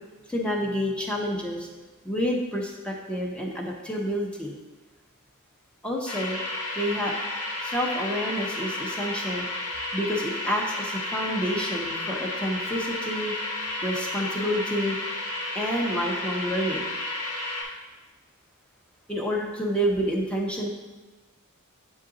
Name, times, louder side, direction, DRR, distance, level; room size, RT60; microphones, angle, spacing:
voice 1, 0.3-1.7 2.0-4.5 5.8-6.4 6.7-7.1 7.6-9.4 9.9-13.3 13.8-15.0 15.5-16.8 19.1-20.7, equal, 5° left, -1 dB, 0.7 m, -28 dB
sound 1, 6.1-17.6, left 2 dB, 90° left, 1.6 m, -32 dB
8.2 x 3.8 x 3.8 m, 1.2 s
head